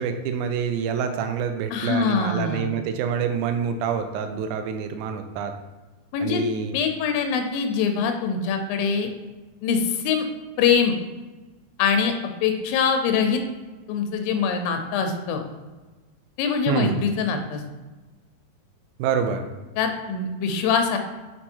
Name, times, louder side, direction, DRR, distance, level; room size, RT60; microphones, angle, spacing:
voice 1, 0.0-5.5 6.2-6.8 16.7-17.0 19.0-19.5, right 7 dB, 80° right, 7 dB, 1.8 m, -26 dB
voice 2, 1.7-2.7 6.1-6.5 6.7-9.1 9.6-10.3 10.6-11.0 11.8-12.1 12.4-13.4 13.9-15.4 16.4-17.6 19.8-21.0, left 6 dB, 85° left, 5 dB, 2.5 m, -23 dB
6.1 x 4.2 x 4.4 m, 1.2 s
omnidirectional pair, 4.0 m